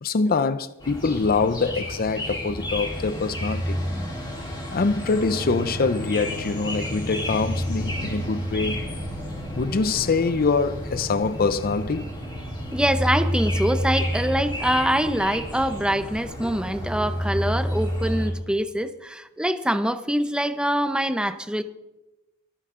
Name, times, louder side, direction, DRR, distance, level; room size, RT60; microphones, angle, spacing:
voice 1, 0.0-3.8 4.7-8.8 9.5-12.0, left 4 dB, 45° left, 0.6 m, -24 dB
sound 1, 0.8-18.3, equal, 20° left, 3.9 m, -30 dB
voice 2, 12.7-21.6, equal, 5° right, 0.7 m, -24 dB
23.5 x 10.0 x 3.8 m
head